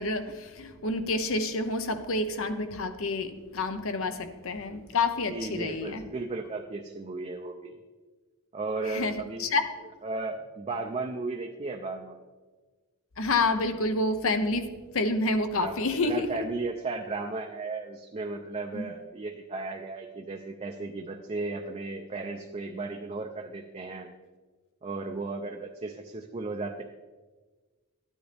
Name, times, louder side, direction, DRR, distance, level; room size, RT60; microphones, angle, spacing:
voice 1, 0.0-6.0 8.9-9.1 9.4-9.6 13.2-14.6 14.9-16.3 18.7-18.8, left 2 dB, 65° left, 8 dB, 0.8 m, -28 dB
voice 2, 5.3-7.8 8.5-9.6 10.0-12.2 15.5-15.8 16.0-24.1 24.8-26.8, right 3 dB, 30° right, 2 dB, 0.5 m, -35 dB
13.0 x 9.5 x 3.4 m, 1.3 s
head